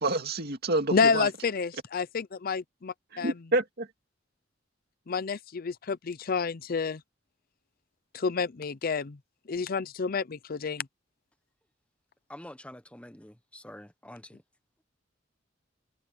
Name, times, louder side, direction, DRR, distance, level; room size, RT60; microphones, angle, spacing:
voice 1, 0.0-1.3 3.1-3.9, right 2 dB, 55° right, 2.2 m, -28 dB
voice 2, 0.9-3.3 5.1-7.0 8.1-9.2 9.5-10.9, left 5 dB, 50° left, 0.6 m, -29 dB
voice 3, 12.3-14.4, left 1 dB, 5° left, 1.2 m, -47 dB
head